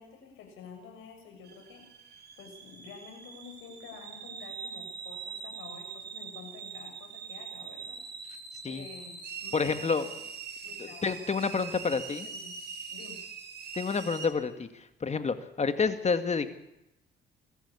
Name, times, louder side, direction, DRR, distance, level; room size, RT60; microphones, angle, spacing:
voice 1, 0.0-8.0 8.6-10.2 10.6-12.6 12.9-13.2, left 5 dB, 90° left, 4 dB, 6.9 m, -50 dB
sound 1, 1.4-14.3, right 6 dB, 55° right, 4.9 m, -43 dB
voice 2, 9.5-10.0 11.0-12.3 13.7-14.7 15.0-16.5, left 5 dB, 35° left, 9 dB, 2.2 m, -28 dB
23.5 x 14.5 x 8.5 m, 0.89 s
cardioid pair, 90°, 20 cm